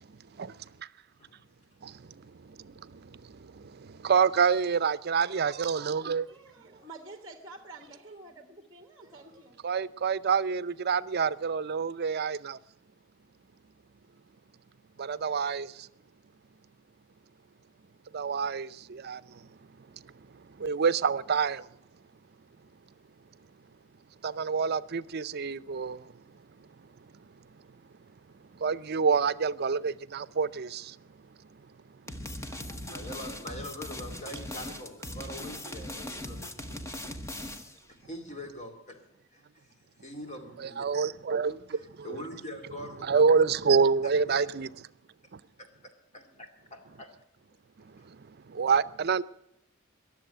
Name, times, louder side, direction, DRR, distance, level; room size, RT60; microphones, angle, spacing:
voice 1, 1.8-6.3 9.6-12.6 15.0-15.9 18.1-19.5 20.6-21.7 24.2-26.1 28.6-31.0 40.6-42.2 43.0-44.7 45.3-45.4 48.0-49.2, right 5 dB, 55° right, 0.5 m, -28 dB
voice 2, 6.0-9.6, right 2 dB, 20° right, 1.2 m, -49 dB
sound 1, 32.1-37.8, left 1 dB, 15° left, 1.0 m, -39 dB
voice 3, 32.9-36.7 37.9-39.0 39.3-40.9 41.4-43.5 44.0-44.4 46.1-47.1 48.0-48.1, left 1 dB, 35° left, 2.4 m, -44 dB
21.5 x 7.5 x 8.9 m
head